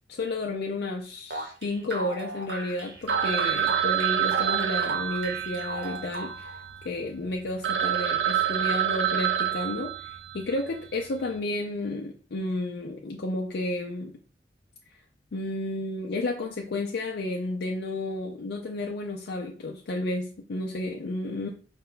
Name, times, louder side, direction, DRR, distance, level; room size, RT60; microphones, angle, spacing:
voice 1, 0.1-14.2 15.3-21.5, left 2 dB, 65° left, 1 dB, 0.4 m, -32 dB
sound 1, 1.3-6.6, right 2 dB, 70° right, 1.1 m, -35 dB
Telephone, 3.1-6.9 7.3-7.4 7.6-10.5, right 9 dB, 90° right, 0.5 m, -27 dB
5.2 x 2.2 x 3.8 m, 0.41 s
head